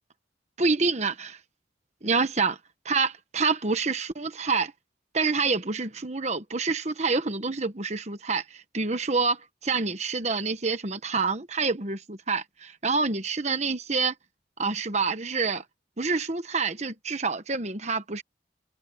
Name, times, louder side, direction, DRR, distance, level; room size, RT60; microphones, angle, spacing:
voice 1, 0.6-1.4 2.0-2.5 2.8-4.7 5.1-14.1 14.6-15.6 16.0-18.2, right 4 dB, 40° right, 1.2 m, -27 dB
head